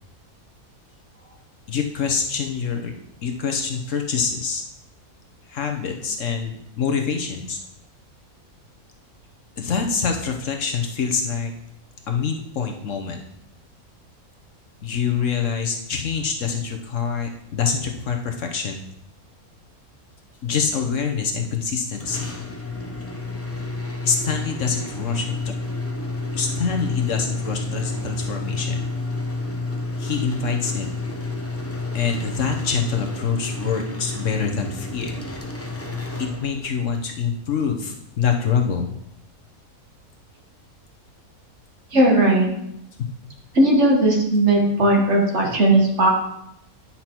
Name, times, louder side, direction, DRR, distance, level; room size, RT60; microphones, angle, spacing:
voice 1, 1.7-2.9 3.2-4.6 5.5-7.6 9.6-11.5 12.1-13.2 14.8-18.8 20.4-22.3 24.0-25.5 26.3-28.8 30.0-30.9 31.9-35.3 36.2-38.9, left 6 dB, 60° left, 3 dB, 1.2 m, -25 dB
sound 1, 22.0-36.9, left 2 dB, 20° left, 0.4 m, -30 dB
voice 2, 41.9-42.5 43.6-46.1, right 1 dB, 50° right, 0 dB, 1.8 m, -17 dB
9.7 x 5.8 x 4.4 m, 0.79 s
omnidirectional pair, 1.6 m